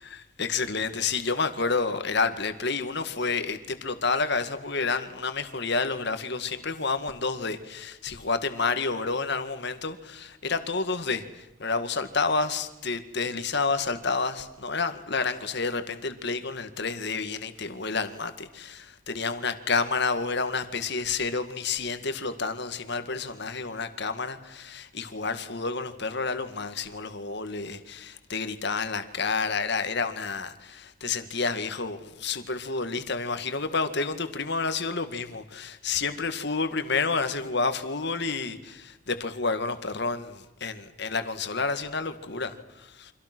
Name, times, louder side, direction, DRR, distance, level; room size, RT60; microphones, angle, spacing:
voice 1, 0.0-43.1, left 4 dB, 55° left, 2.0 m, -29 dB
30.0 x 26.0 x 6.2 m
head